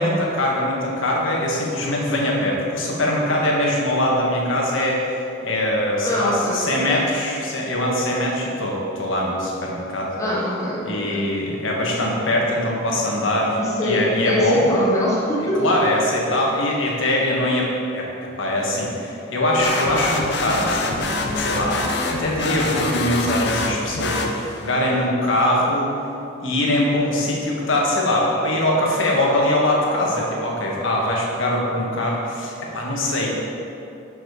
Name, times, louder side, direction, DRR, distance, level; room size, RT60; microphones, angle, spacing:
voice 1, 0.0-10.1 10.8-14.6 15.6-18.1 18.4-21.0 21.3-25.9 26.4-33.3, left 1 dB, 80° left, -2 dB, 1.4 m, -22 dB
voice 2, 6.0-7.0 10.2-11.2 13.6-15.8, left 1 dB, 15° left, -5 dB, 1.0 m, -23 dB
sound 1, 19.6-24.8, left 2 dB, 55° left, 0.6 m, -25 dB
7.1 x 5.1 x 4.8 m, 2.8 s
head